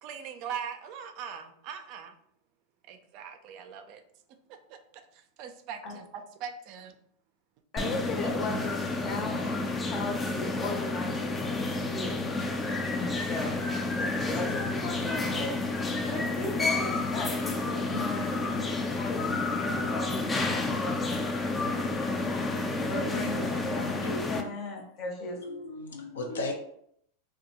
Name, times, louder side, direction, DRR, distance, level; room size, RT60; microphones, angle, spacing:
voice 1, 0.0-2.2 2.9-4.0 4.5-6.9, right 7 dB, 55° right, 8 dB, 0.3 m, -41 dB
voice 2, 7.7-12.2 12.9-13.6 14.0-21.3 22.9-25.3, left 2 dB, 40° left, 2 dB, 0.7 m, -37 dB
sound 1, 7.8-24.4, left 3 dB, 15° left, 0.4 m, -30 dB
voice 3, 24.0-24.5 25.2-26.5, left 2 dB, 90° left, 2 dB, 0.6 m, -36 dB
2.6 x 2.2 x 2.8 m, 0.71 s
hypercardioid pair, 115°, 0 cm